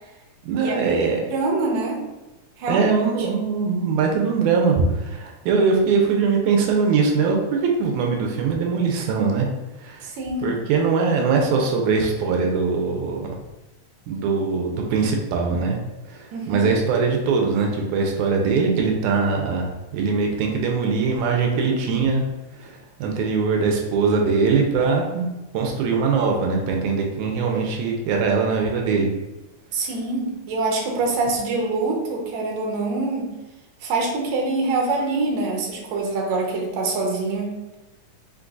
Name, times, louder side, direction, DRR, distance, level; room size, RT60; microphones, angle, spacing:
voice 1, 0.4-1.2 2.7-9.5 9.8-10.1 10.4-13.3 14.1-15.8 16.1-22.2 22.5-29.1, right 4 dB, 90° right, 1 dB, 2.1 m, -22 dB
voice 2, 1.3-2.0 2.6-2.9 10.0-10.6 16.3-16.8 29.7-33.3 33.8-37.5, right 3 dB, 70° right, 0 dB, 2.0 m, -25 dB
5.1 x 3.8 x 2.4 m, 1.1 s
omnidirectional pair, 3.4 m